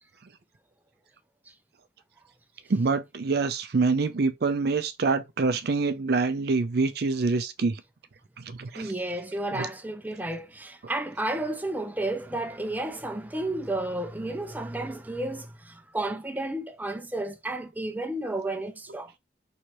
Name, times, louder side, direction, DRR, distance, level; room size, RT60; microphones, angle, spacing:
voice 1, 2.7-7.8 8.4-8.9 9.5-9.7, right 4 dB, 60° right, 0.5 m, -26 dB
voice 2, 8.7-19.1, right 1 dB, 10° right, 0.6 m, -32 dB
4.5 x 3.2 x 3.0 m
head